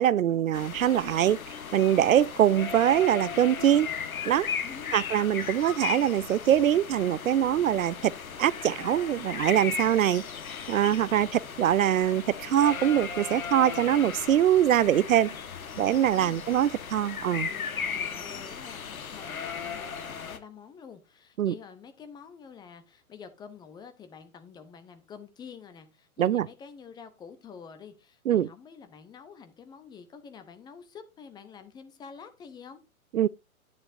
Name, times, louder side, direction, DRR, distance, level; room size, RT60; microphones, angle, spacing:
voice 1, 0.0-1.4 1.7-3.9 4.3-4.5 4.9-8.1 8.4-10.2 10.7-15.3 15.8-17.5 21.4-21.5 26.2-26.5 28.3-28.5 33.1-33.3, right 11 dB, 65° right, 0.5 m, -23 dB
sound 1, 0.5-20.4, left 6 dB, 70° left, 1.4 m, -36 dB
voice 2, 4.6-5.0 16.1-16.5 17.9-32.8, left 6 dB, 10° left, 0.7 m, -48 dB
9.6 x 9.4 x 2.6 m
figure-of-eight pair, 120°, 43 cm